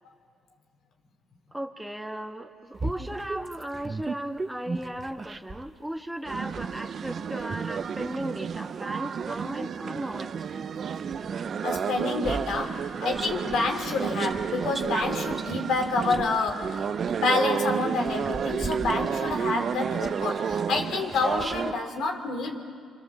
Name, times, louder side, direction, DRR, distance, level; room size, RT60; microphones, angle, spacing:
voice 1, 1.5-10.3 12.5-13.0, right 1 dB, 5° right, 4 dB, 1.5 m, -36 dB
sound 1, 2.7-5.7 6.3-10.6 11.1-21.8, right 3 dB, 30° right, 1.1 m, -38 dB
sound 2, 6.3-21.7, right 7 dB, 55° right, 0.6 m, -31 dB
voice 2, 11.6-16.9 17.2-22.6, left 3 dB, 75° left, 4 dB, 3.1 m, -28 dB
27.5 x 25.5 x 7.4 m, 2.1 s
cardioid pair, 90°, 0 cm